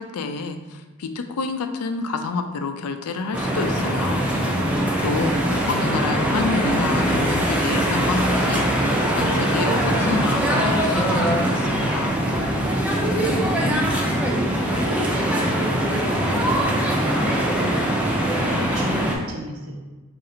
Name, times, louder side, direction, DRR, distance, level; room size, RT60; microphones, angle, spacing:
voice 1, 0.0-4.2 5.0-5.3 5.7-8.7 9.1-12.2, left 4 dB, 85° left, 7 dB, 0.4 m, -28 dB
sound 1, 3.3-19.1, right 1 dB, 5° right, 0.5 m, -22 dB
voice 2, 5.1-5.6 13.1-13.8 14.4-17.7 18.2-19.8, right 1 dB, 75° right, -2 dB, 1.0 m, -34 dB
3.8 x 2.5 x 4.2 m, 1.2 s
head